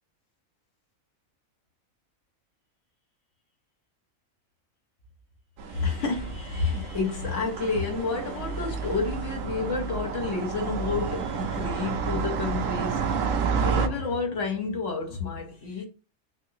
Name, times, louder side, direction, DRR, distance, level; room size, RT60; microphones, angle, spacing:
voice 1, 5.6-15.9, left 4 dB, 65° left, 1.2 m, -30 dB
sound 1, 5.6-13.9, right 6 dB, 75° right, 0.9 m, -30 dB
3.9 x 2.6 x 2.7 m
omnidirectional pair, 1.5 m